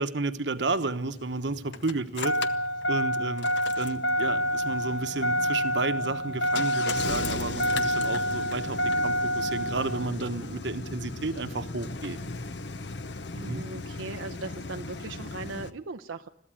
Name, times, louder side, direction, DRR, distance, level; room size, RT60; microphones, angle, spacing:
voice 1, 0.0-2.4 2.9-3.5 3.8-12.2 13.3-13.6, right 3 dB, 65° right, 10 dB, 1.1 m, -32 dB
Engine starting, 0.6-15.7, equal, 60° left, 0.9 m, -30 dB
voice 2, 13.4-16.3, right 3 dB, 90° right, 4 dB, 0.7 m, -39 dB
21.5 x 14.5 x 9.1 m, 0.75 s
head